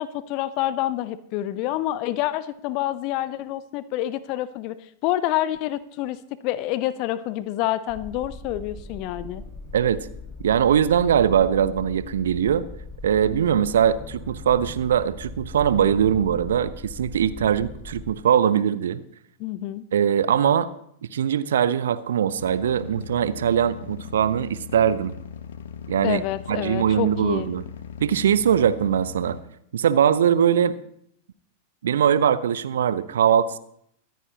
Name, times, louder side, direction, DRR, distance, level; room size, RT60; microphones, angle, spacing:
voice 1, 0.0-4.8 5.0-9.4 19.4-19.8 26.0-27.5, left 13 dB, 45° left, 16 dB, 0.7 m, -27 dB
sound 1, 7.9-18.0, left 3 dB, 20° left, 6.0 m, -39 dB
voice 2, 9.7-10.1 10.4-12.6 13.0-19.0 19.9-20.7 21.1-25.1 25.9-26.2 26.5-27.6 28.0-29.4 29.7-30.7 31.8-33.6, right 9 dB, 65° right, 15 dB, 0.6 m, -21 dB
sound 2, 22.4-29.4, left 7 dB, 60° left, 1.1 m, -39 dB
24.0 x 9.2 x 2.9 m, 0.71 s
figure-of-eight pair, 90°, 0 cm